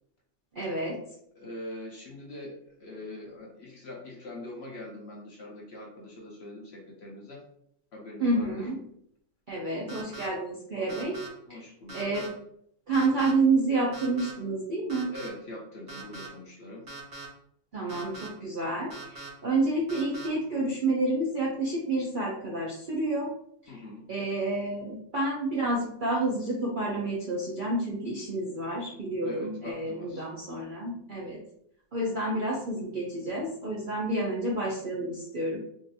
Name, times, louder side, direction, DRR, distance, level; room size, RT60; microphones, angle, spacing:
voice 1, 0.5-1.0 8.2-8.8 9.5-11.2 11.5-11.6 11.9-12.3 12.9-15.1 17.7-23.3 23.7-23.8 24.1-31.4 31.9-35.6, right 2 dB, 60° right, -4 dB, 0.5 m, -29 dB
voice 2, 1.4-7.4 7.9-8.7 11.5-12.0 15.1-16.9 23.7-24.0 29.2-30.3, left 1 dB, 60° left, -2 dB, 0.8 m, -43 dB
sound 1, 9.9-10.3 10.9-11.3 11.9-12.3 12.9-13.3 13.9-14.3 14.9-15.3 15.9-16.3 16.9-17.2 17.9-18.3 18.9-19.3 19.9-20.3, right 2 dB, 25° right, 0.8 m, -42 dB
3.7 x 2.4 x 2.6 m, 0.70 s
omnidirectional pair, 1.6 m